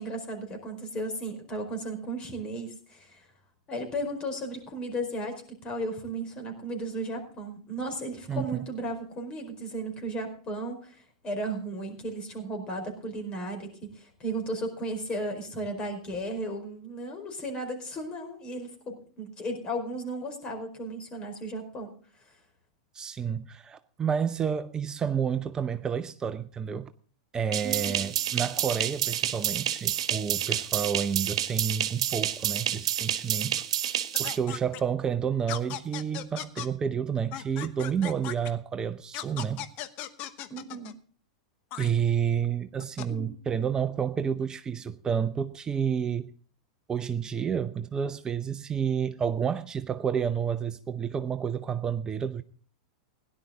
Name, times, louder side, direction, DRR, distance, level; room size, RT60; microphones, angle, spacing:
voice 1, 0.0-3.3 3.7-21.9 27.6-28.2 40.5-40.9 43.1-43.3, right 1 dB, 30° left, 4.8 m, -35 dB
voice 2, 8.3-8.6 22.9-26.9 27.3-33.6 34.2-39.7 41.8-46.3 46.9-52.4, right 7 dB, 20° right, 0.6 m, -30 dB
sound 1, 27.5-34.4, right 10 dB, 70° right, 1.3 m, -29 dB
sound 2, 34.1-34.8 35.5-36.7 37.3-38.5 39.1-41.0 41.7-41.9 42.8-43.1, left 12 dB, 45° left, 1.1 m, -37 dB
17.0 x 11.0 x 3.8 m
hypercardioid pair, 100°, 3 cm